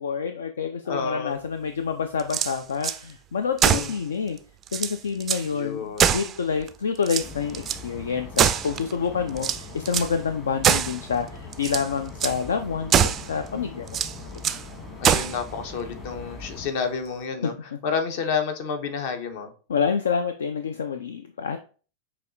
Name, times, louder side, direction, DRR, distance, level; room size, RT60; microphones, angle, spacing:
voice 1, 0.0-4.4 4.7-12.9 13.3-14.0 14.3-14.4 17.4-17.5 19.7-21.6, left 6 dB, 65° left, 8 dB, 0.3 m, -28 dB
voice 2, 0.9-1.4 3.6-3.9 5.5-6.1 15.0-17.5 17.8-19.5, left 5 dB, 50° left, 7 dB, 0.8 m, -30 dB
sound 1, 2.2-3.0 3.6-4.0 4.4-4.5 4.7-5.5 6.0-6.7 7.0-7.8 8.4-8.9 9.4-10.1 10.6-11.0 11.5-11.9 12.2-12.4 12.9-13.3 13.9-14.6 15.0-15.4, right 8 dB, 25° right, 0.3 m, -23 dB
sound 2, 7.2-16.7, left 3 dB, 25° left, 1.3 m, -41 dB
5.7 x 2.9 x 2.5 m, 0.37 s
figure-of-eight pair, 90°, 0 cm